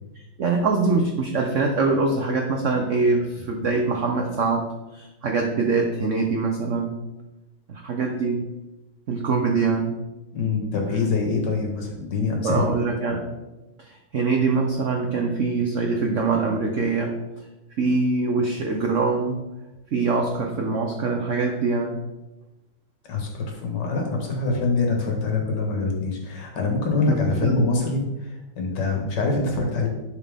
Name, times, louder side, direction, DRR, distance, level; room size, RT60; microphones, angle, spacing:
voice 1, 0.2-7.0 7.7-8.4 9.1-10.0 12.4-13.3 13.8-17.2 17.8-19.4 19.9-22.0 27.1-27.2 27.4-27.7, right 4 dB, 80° right, 2 dB, 0.6 m, -23 dB
voice 2, 10.3-12.7 23.1-29.9, left 3 dB, 55° left, 1 dB, 1.9 m, -25 dB
11.0 x 4.5 x 3.5 m, 1.0 s
omnidirectional pair, 2.3 m